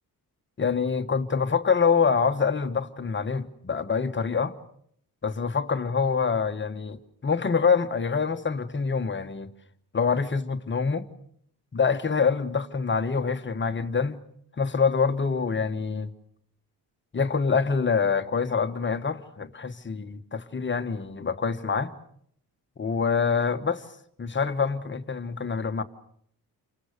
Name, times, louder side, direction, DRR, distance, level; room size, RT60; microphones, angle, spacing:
voice 1, 0.6-4.5 5.2-7.0 7.2-9.5 9.9-11.0 11.7-14.2 14.6-16.1 17.1-21.9 22.8-23.8 24.2-25.8, left 5 dB, 30° left, 1.4 m, -25 dB
29.5 x 24.5 x 6.7 m
cardioid pair, 130°, 37 cm